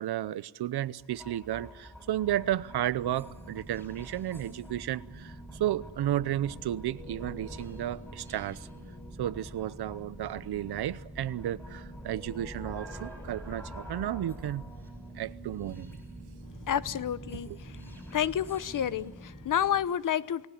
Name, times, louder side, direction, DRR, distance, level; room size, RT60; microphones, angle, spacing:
voice 1, 0.0-8.7 9.2-14.6 15.2-16.0 17.5-17.6, right 12 dB, 80° right, 0.8 m, -33 dB
sound 1, 1.0-19.9, right 1 dB, 5° left, 4.9 m, -45 dB
voice 2, 16.7-17.5 18.1-20.5, left 9 dB, 55° left, 0.8 m, -29 dB
29.5 x 19.0 x 8.4 m
wide cardioid pair, 160°, 39 cm